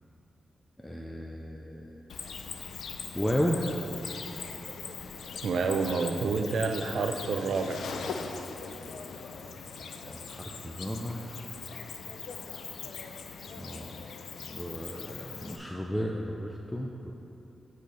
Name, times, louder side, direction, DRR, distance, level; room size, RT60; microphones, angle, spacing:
voice 1, 0.8-2.1 3.1-3.6 10.0-11.2 13.5-14.0 14.5-17.1, equal, 5° left, -1 dB, 0.5 m, -33 dB
Cricket, 2.1-15.6, left 5 dB, 80° left, 0.5 m, -41 dB
voice 2, 5.4-7.8, right 4 dB, 75° right, 6 dB, 0.5 m, -28 dB
7.8 x 4.4 x 6.8 m, 2.8 s
wide cardioid pair, 105°, 0 cm